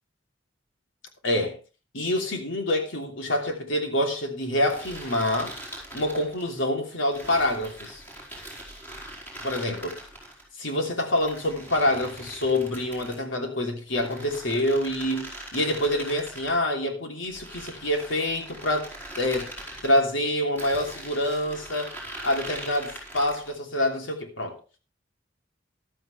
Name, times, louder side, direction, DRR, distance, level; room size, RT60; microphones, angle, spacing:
voice 1, 1.2-1.6 1.9-5.6 5.9-8.0 9.4-10.0 10.6-18.9 19.2-19.5 19.8-21.9 22.2-24.6, left 1 dB, 80° left, 3.1 m, -26 dB
sound 1, 4.6-6.5 7.1-10.4 11.2-13.3 13.9-16.6 17.2-20.0 20.6-23.5, right 1 dB, 10° left, 4.9 m, -41 dB
14.0 x 12.0 x 3.3 m
head